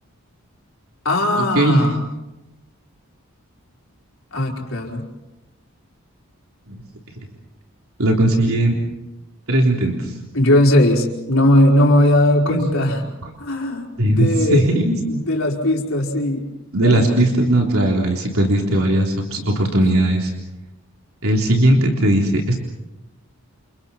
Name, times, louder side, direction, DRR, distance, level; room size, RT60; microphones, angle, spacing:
voice 1, 1.0-1.9 4.3-5.0 10.3-13.0 13.4-14.7 15.1-16.5 16.8-17.1, left 1 dB, 65° left, -1 dB, 5.0 m, -18 dB
voice 2, 8.0-8.8 9.5-10.1 12.4-12.6 14.0-14.3 14.5-15.0 16.7-20.3 21.2-22.6, right 1 dB, 75° right, 0 dB, 3.6 m, -18 dB
30.0 x 28.5 x 4.5 m, 0.98 s
head